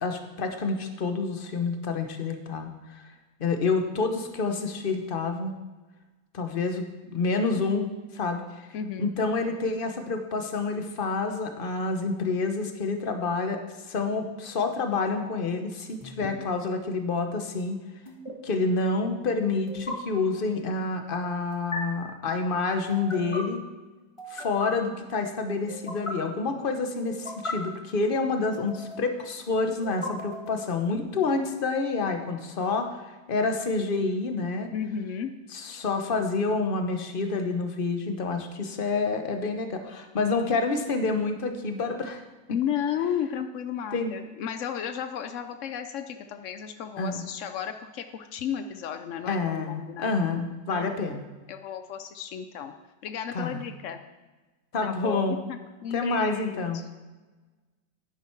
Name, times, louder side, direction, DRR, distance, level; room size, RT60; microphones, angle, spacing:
voice 1, 0.0-3.0 3.4-5.5 6.3-7.8 8.1-8.7 9.0-13.6 13.9-17.8 18.4-23.6 24.3-34.7 35.5-42.2 43.9-44.1 47.0-47.2 49.3-51.2 53.3-53.7 54.7-55.4 55.9-56.8, left 3 dB, 40° left, 6 dB, 0.9 m, -28 dB
voice 2, 8.7-9.1 34.7-35.3 35.7-35.8 42.5-50.2 50.7-51.0 51.5-52.7 53.0-54.0 54.8-56.9, left 8 dB, 90° left, 8 dB, 0.6 m, -33 dB
sound 1, 16.0-16.3 18.0-18.3 19.7-19.9 21.5-21.8 22.9-23.4 24.2-24.7 25.7-26.1 27.1-27.5 28.5-29.1 29.8-30.7, left 1 dB, 20° left, 1.4 m, -37 dB
10.5 x 10.0 x 4.5 m, 1.2 s
omnidirectional pair, 2.0 m